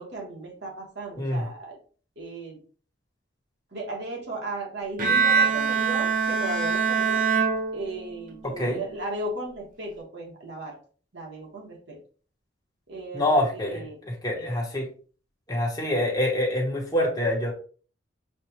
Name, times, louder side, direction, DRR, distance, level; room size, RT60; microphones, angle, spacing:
voice 1, 0.0-1.8 2.2-2.6 3.7-7.2 7.7-10.8 11.1-12.0 12.9-14.0 14.4-14.5, right 2 dB, 65° right, -2 dB, 1.5 m, -36 dB
voice 2, 1.2-1.5 8.4-8.8 13.1-14.9 15.5-17.5, left 1 dB, 20° left, -3 dB, 1.2 m, -26 dB
Bowed string instrument, 5.0-8.3, right 5 dB, 45° right, 0.9 m, -24 dB
5.9 x 2.5 x 2.9 m, 0.40 s
head